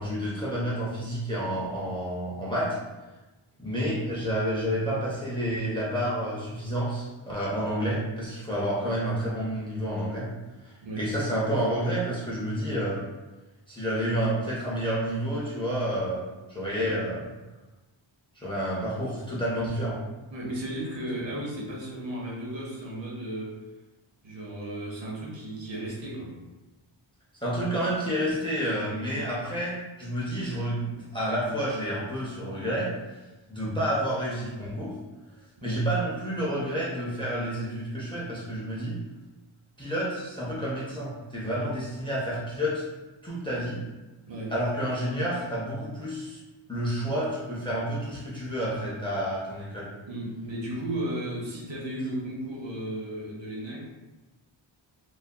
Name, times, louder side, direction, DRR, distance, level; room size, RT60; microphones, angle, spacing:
voice 1, 0.0-2.8 3.6-10.3 10.6-13.0 13.7-17.2 18.4-20.0 27.4-32.9 33.5-34.9 35.6-39.0 39.8-42.8 43.2-43.8 44.5-46.4 46.7-49.9, equal, 10° left, -7 dB, 0.4 m, -29 dB
voice 2, 20.3-23.6 24.2-26.4 35.6-35.9 44.3-44.6 50.0-53.8, right 1 dB, 65° right, -4 dB, 0.8 m, -34 dB
2.6 x 2.3 x 2.2 m, 1.1 s
wide cardioid pair, 160°, 48 cm